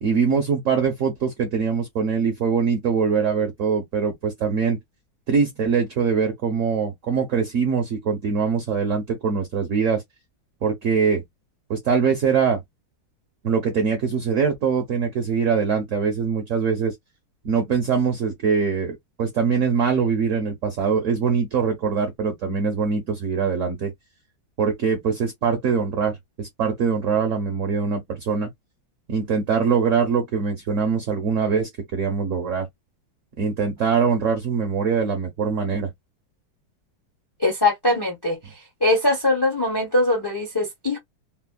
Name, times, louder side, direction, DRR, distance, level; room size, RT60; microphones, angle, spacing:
voice 1, 0.0-4.8 5.3-10.0 10.6-11.2 11.7-12.6 13.4-16.9 17.4-23.9 24.6-28.5 29.1-32.7 33.4-35.9, right 6 dB, 55° right, 0.9 m, -23 dB
voice 2, 37.4-38.4 38.8-41.0, left 2 dB, 25° left, 0.5 m, -21 dB
3.3 x 2.1 x 2.2 m
omnidirectional pair, 2.1 m